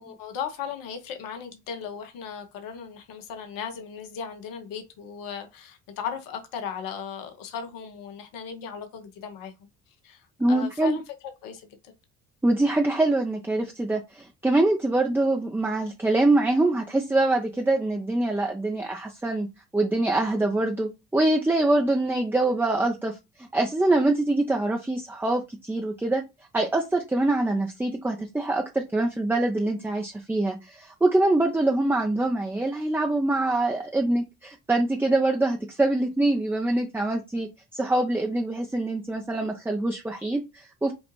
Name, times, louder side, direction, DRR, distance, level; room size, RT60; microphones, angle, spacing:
voice 1, 0.0-9.5 10.0-11.0 11.4-11.9, left 7 dB, 65° left, 1.1 m, -37 dB
voice 2, 10.4-11.0 12.4-19.5 19.7-26.2 26.5-40.9, right 2 dB, 5° right, 0.7 m, -24 dB
5.3 x 2.4 x 3.1 m
hypercardioid pair, 60°, 36 cm